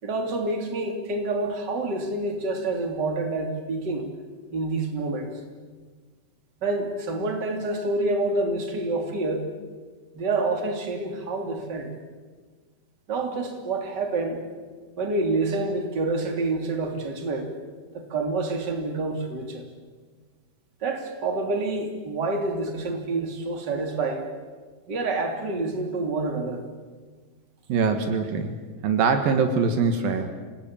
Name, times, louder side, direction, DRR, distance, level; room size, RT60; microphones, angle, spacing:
voice 1, 0.0-4.1 4.5-5.3 6.6-9.5 10.1-11.9 13.1-14.4 15.0-17.5 17.9-19.6 20.8-24.3 24.9-26.6, right 2 dB, 30° right, 4 dB, 3.2 m, -27 dB
voice 2, 27.7-28.6 28.8-30.3, right 5 dB, 70° right, 7 dB, 3.3 m, -23 dB
27.5 x 18.5 x 8.7 m, 1.5 s
omnidirectional pair, 4.3 m